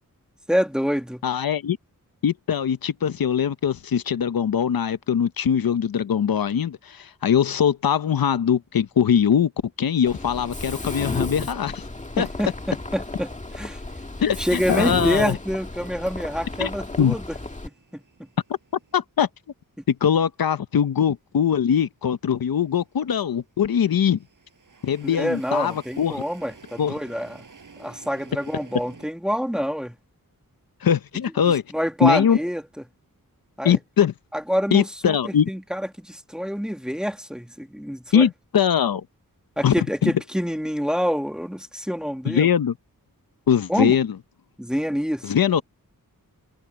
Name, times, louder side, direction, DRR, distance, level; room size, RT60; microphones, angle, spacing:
voice 1, 0.5-1.2 12.2-13.8 14.4-17.4 17.6-18.3 25.0-27.4 27.8-30.0 31.7-32.6 33.6-33.8 34.3-38.3 39.6-42.5 43.7-44.0 44.6-45.3, equal, ahead, 1.7 m, -27 dB
voice 2, 1.2-1.8 2.2-9.5 9.8-11.9 12.2-12.3 14.2-15.4 16.6-16.7 17.0-17.2 18.9-19.3 19.9-24.2 24.8-26.2 26.8-27.0 30.8-31.6 32.0-32.4 33.6-34.1 34.7-35.5 38.1-39.0 39.6-39.7 40.0-40.1 42.3-42.7 43.5-44.1 45.2-45.6, left 8 dB, 75° left, 0.8 m, -21 dB
Mechanisms, 10.1-17.7, left 2 dB, 20° left, 1.8 m, -33 dB
sound 1, 11.2-19.0 22.8-23.3 23.8-29.1, right 5 dB, 60° right, 6.2 m, -53 dB
wide cardioid pair, 125°, 35 cm